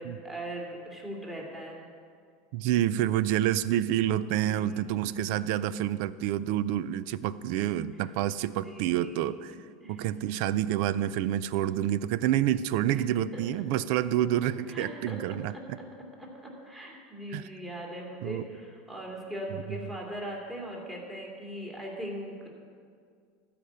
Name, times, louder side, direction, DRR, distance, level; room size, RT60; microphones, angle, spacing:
voice 1, 0.0-1.8 4.4-5.3 8.6-9.3 9.8-10.1 13.0-13.4 14.4-15.9 16.2-22.5, right 1 dB, 15° right, -2 dB, 2.4 m, -40 dB
voice 2, 2.5-9.6 9.9-15.8 17.3-17.5 18.2-18.5, right 12 dB, 65° right, 17 dB, 0.4 m, -28 dB
13.5 x 5.1 x 8.0 m, 2.1 s
supercardioid pair, 140°, 0 cm